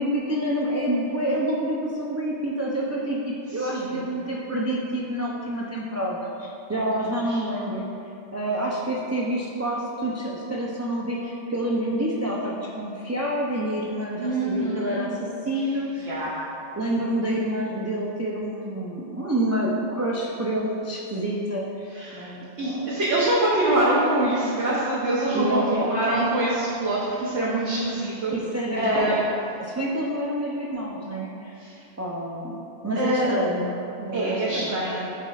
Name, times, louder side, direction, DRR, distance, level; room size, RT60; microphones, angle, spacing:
voice 1, 0.0-7.9 8.3-16.1 16.8-23.0 25.3-25.9 28.3-29.1 29.6-31.6 32.0-34.7, right 1 dB, 25° right, -4 dB, 0.3 m, -28 dB
voice 2, 3.5-4.1 7.2-7.4 14.2-15.0 15.7-16.4 21.9-22.3 22.6-28.3 28.7-29.2 31.6-31.8 32.9-33.3 34.1-35.1, right 1 dB, 85° right, -8 dB, 1.3 m, -25 dB
11.0 x 4.2 x 2.4 m, 2.7 s
omnidirectional pair, 1.1 m